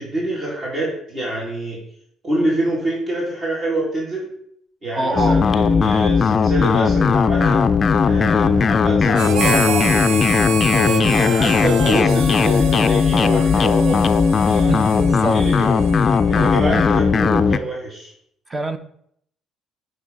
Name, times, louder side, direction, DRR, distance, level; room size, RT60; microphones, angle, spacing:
voice 1, 0.0-1.8 2.2-4.3 4.8-7.6 8.0-10.2 10.7-14.0 14.3-14.8 15.3-15.7 16.3-18.1, right 1 dB, 35° right, -5 dB, 2.5 m, -26 dB
voice 2, 4.9-5.5 14.7-15.5 16.3-16.9 18.5-18.8, right 2 dB, 20° right, 10 dB, 0.7 m, -25 dB
sound 1, 5.2-17.6, left 5 dB, 40° left, 0.4 m, -17 dB
Harmonica, 9.1-16.9, right 6 dB, 80° right, 0.7 m, -28 dB
8.7 x 3.3 x 5.1 m, 0.68 s
cardioid pair, 105°, 0 cm